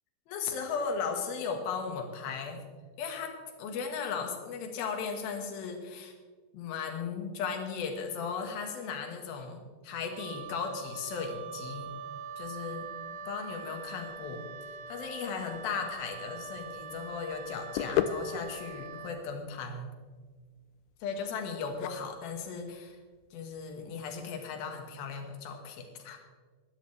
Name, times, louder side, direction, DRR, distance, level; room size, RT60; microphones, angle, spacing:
voice 1, 0.3-2.6 3.0-6.1 6.5-11.9 12.4-12.9 13.1-14.5 14.9-19.9 21.0-23.0 23.3-26.4, left 5 dB, 60° left, 4 dB, 3.0 m, -36 dB
Wind instrument woodwind instrument, 10.1-19.2, right 5 dB, 70° right, 2.0 m, -43 dB
sound 1, 16.4-24.3, left 10 dB, 85° left, 2.9 m, -37 dB
20.5 x 12.5 x 3.3 m, 1.5 s
omnidirectional pair, 5.3 m